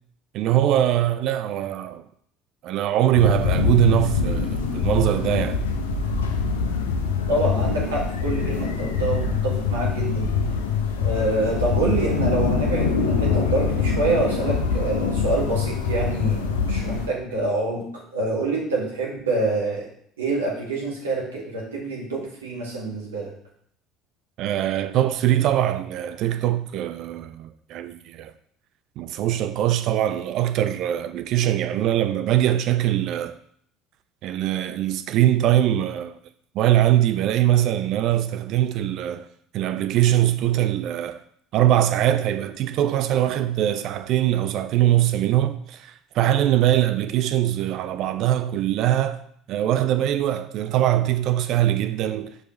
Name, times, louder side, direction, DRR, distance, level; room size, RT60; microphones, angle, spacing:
voice 1, 0.3-2.0 2.6-5.6 24.4-28.3 29.0-33.4 34.2-36.2 36.5-39.3 39.5-41.2 41.5-49.2 49.5-52.4, right 12 dB, 50° right, 0.3 m, -22 dB
sound 1, 3.2-17.1, left 5 dB, 75° left, 0.6 m, -24 dB
voice 2, 7.3-10.3 11.0-19.9 20.2-23.3, right 2 dB, 75° right, 1.8 m, -26 dB
6.2 x 4.8 x 3.2 m
figure-of-eight pair, 60°, 0 cm